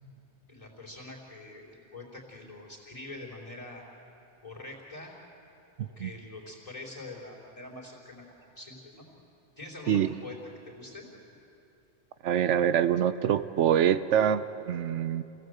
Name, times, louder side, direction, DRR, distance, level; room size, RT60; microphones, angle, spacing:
voice 1, 0.5-3.9 4.4-5.1 5.8-9.0 9.6-10.4 10.7-11.1, left 2 dB, 30° left, -3 dB, 3.9 m, -44 dB
voice 2, 5.8-6.1 9.9-10.1 12.2-15.2, right 9 dB, 85° right, 13 dB, 1.0 m, -25 dB
27.0 x 17.0 x 7.9 m, 2.9 s
omnidirectional pair, 1.2 m